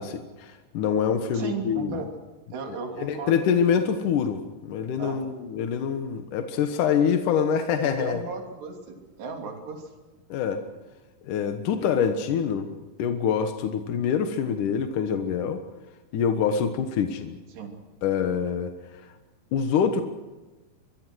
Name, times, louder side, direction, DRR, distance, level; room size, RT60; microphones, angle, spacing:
voice 1, 0.0-2.0 2.7-8.2 10.3-10.6 11.2-12.7 13.0-15.6 16.1-17.4 18.0-18.7 19.5-20.0, left 7 dB, 65° left, 6 dB, 2.0 m, -25 dB
voice 2, 1.3-2.1 2.5-3.4 5.0-5.3 7.8-9.9 17.5-17.8, right 4 dB, 65° right, 3 dB, 5.0 m, -35 dB
23.5 x 23.5 x 6.3 m, 1.2 s
omnidirectional pair, 5.3 m